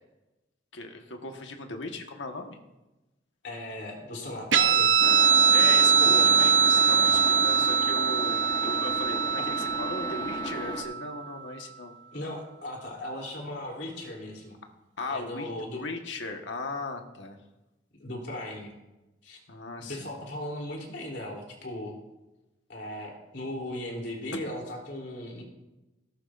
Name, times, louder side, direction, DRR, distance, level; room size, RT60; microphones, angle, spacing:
voice 1, 0.7-2.6 5.5-11.9 15.0-17.4 19.5-20.1, left 3 dB, 90° left, 3 dB, 1.4 m, -37 dB
voice 2, 3.4-4.9 6.0-6.3 12.1-14.6 15.1-15.8 18.0-18.7 19.2-19.4 19.9-22.0 22.7-25.4, left 1 dB, 65° left, -1 dB, 3.4 m, -37 dB
Guitar, 4.5-11.4, right 6 dB, 90° right, 0.8 m, -22 dB
sound 1, 5.0-10.8, left 1 dB, 25° left, 1.2 m, -35 dB
18.0 x 11.0 x 2.6 m, 1.0 s
head